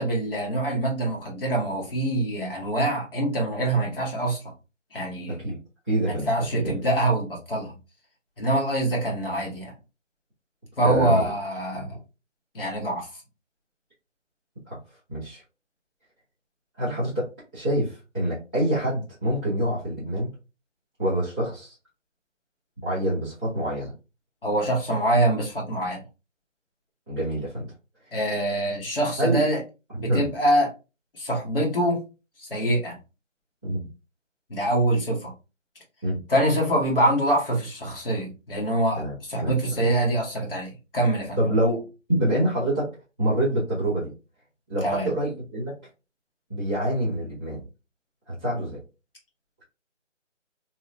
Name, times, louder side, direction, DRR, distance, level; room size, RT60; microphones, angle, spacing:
voice 1, 0.0-4.4 4.9-5.4 6.0-7.8 8.4-9.7 10.8-12.0 12.5-13.1 24.4-26.0 28.1-29.6 29.9-30.7 31.2-32.0 32.4-33.0 34.5-35.3 36.3-39.0 39.3-41.4 44.8-45.1, right 1 dB, 45° left, 1.1 m, -24 dB
voice 2, 5.9-6.7 10.8-11.2 11.7-11.9 14.7-14.8 15.1-15.4 16.8-20.3 21.0-21.7 22.8-23.9 27.1-27.7 29.2-29.4 30.1-30.3 33.6-33.8 36.0-36.2 39.0-39.1 39.4-39.5 41.4-42.9 43.2-44.1 44.7-45.7 46.5-47.6 48.3-48.8, right 1 dB, 15° left, 0.8 m, -26 dB
2.9 x 2.1 x 2.6 m
figure-of-eight pair, 165°, 38 cm